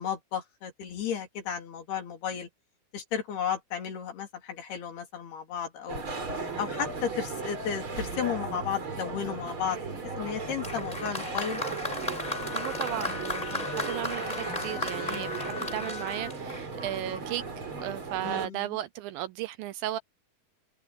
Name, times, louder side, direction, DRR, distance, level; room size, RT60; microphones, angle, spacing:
voice 1, 0.0-2.5 2.9-6.0 6.6-9.8 10.2-11.6 15.1-15.4 18.2-18.8, left 8 dB, 80° left, 5.1 m, -34 dB
sound 1, 5.9-18.5, right 3 dB, 30° right, 4.6 m, -36 dB
Applause, 10.6-17.1 18.0-18.1, left 1 dB, 10° left, 4.9 m, -36 dB
Wind instrument woodwind instrument, 12.2-16.4, left 8 dB, 50° left, 2.5 m, -41 dB
voice 2, 12.5-17.4 17.8-20.0, right 14 dB, 80° right, 2.2 m, -35 dB
omnidirectional pair, 4.6 m